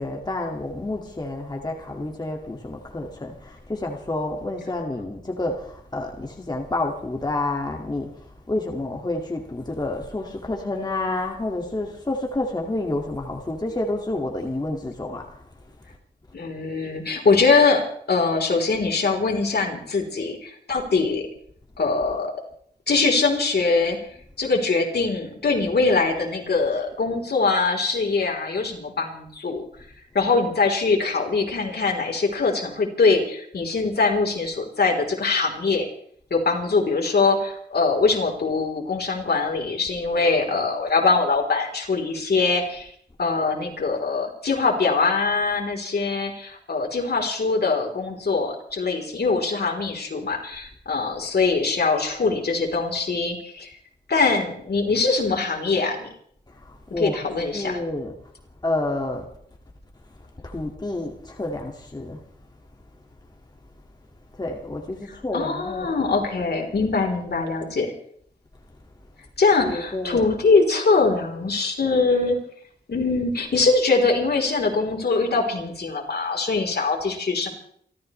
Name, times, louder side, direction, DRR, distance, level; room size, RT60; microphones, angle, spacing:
voice 1, 0.0-8.1 8.5-15.2 56.7-57.2 57.5-58.1 58.6-59.2 60.4-62.2 64.4-65.9 69.6-70.2, left 2 dB, 25° left, 0 dB, 2.1 m, -29 dB
voice 2, 16.3-17.8 18.1-21.3 21.8-22.3 22.9-24.0 24.4-29.6 30.1-35.9 36.3-42.9 43.2-53.7 54.1-56.1 57.0-57.8 65.1-67.9 69.4-72.4 72.9-77.5, left 4 dB, 65° left, 1 dB, 3.8 m, -22 dB
28.5 x 13.5 x 3.3 m, 0.64 s
wide cardioid pair, 90°, 18 cm